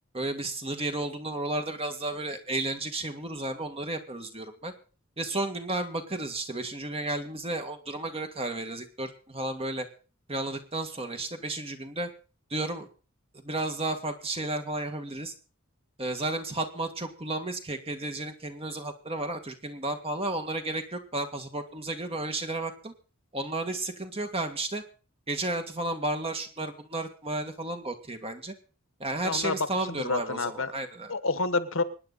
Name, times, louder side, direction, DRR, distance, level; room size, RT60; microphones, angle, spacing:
voice 1, 0.1-4.7 5.2-9.9 10.3-12.1 12.5-12.9 13.3-15.3 16.0-22.9 23.3-24.8 25.3-28.5 29.0-31.1, right 2 dB, 30° right, 6 dB, 1.8 m, -33 dB
voice 2, 29.2-29.5 29.9-30.7 31.1-31.8, left 3 dB, 70° left, 12 dB, 1.3 m, -28 dB
24.5 x 9.9 x 4.0 m, 0.37 s
head